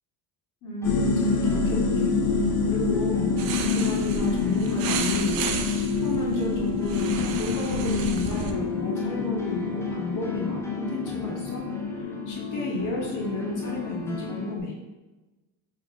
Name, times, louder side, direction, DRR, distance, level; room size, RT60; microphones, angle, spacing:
voice 1, 0.6-2.1 2.4-5.5 5.7-14.7, left 2 dB, 45° left, -3 dB, 1.4 m, -33 dB
sound 1, 0.8-14.6, left 4 dB, 65° left, 0.7 m, -27 dB
sound 2, 0.8-14.5, equal, 5° left, 0.4 m, -41 dB
sound 3, 3.4-8.5, right 7 dB, 60° right, 0.6 m, -33 dB
4.6 x 2.2 x 3.6 m, 1.1 s
cardioid pair, 105°, 41 cm